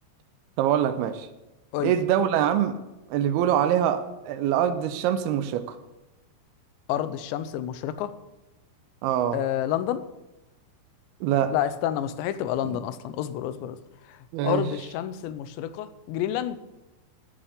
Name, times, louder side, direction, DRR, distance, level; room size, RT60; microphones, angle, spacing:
voice 1, 0.6-1.3 1.8-2.8 3.1-5.8 9.0-9.4 11.2-11.6 12.6-12.8 14.3-14.7, right 10 dB, 90° right, 9 dB, 2.2 m, -24 dB
voice 2, 6.9-8.1 9.3-10.0 11.5-13.8 14.4-16.6, left 11 dB, 80° left, 12 dB, 2.9 m, -29 dB
13.5 x 7.3 x 8.4 m, 1.0 s
omnidirectional pair, 5.5 m